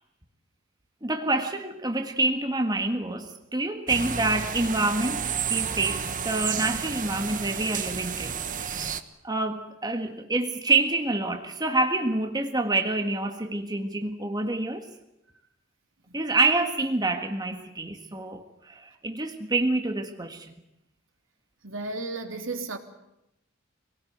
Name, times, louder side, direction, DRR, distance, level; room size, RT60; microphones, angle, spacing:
voice 1, 1.0-8.9 9.2-14.8 16.1-20.4, right 2 dB, 20° right, 5 dB, 1.7 m, -27 dB
sound 1, 3.9-9.0, right 7 dB, 40° right, 1.2 m, -31 dB
voice 2, 21.6-22.8, right 3 dB, 65° right, 6 dB, 3.1 m, -34 dB
25.5 x 19.0 x 9.4 m, 0.87 s
head